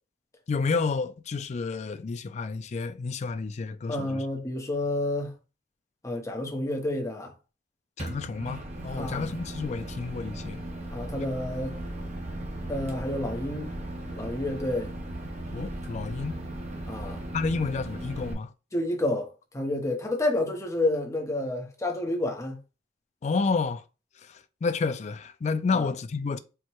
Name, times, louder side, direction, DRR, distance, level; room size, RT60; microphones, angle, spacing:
voice 1, 0.5-4.2 8.0-10.6 15.5-16.4 17.3-18.5 23.2-23.8 24.6-26.4, left 4 dB, 40° left, 0.3 m, -30 dB
voice 2, 3.9-5.3 6.0-7.3 9.0-9.3 10.9-11.8 12.7-13.7 14.1-14.9 16.9-17.2 18.7-22.6 25.7-25.9, left 1 dB, 20° left, 0.9 m, -29 dB
Microwave oven, 8.0-18.3, right 1 dB, 40° right, 1.0 m, -37 dB
4.6 x 2.2 x 4.4 m
head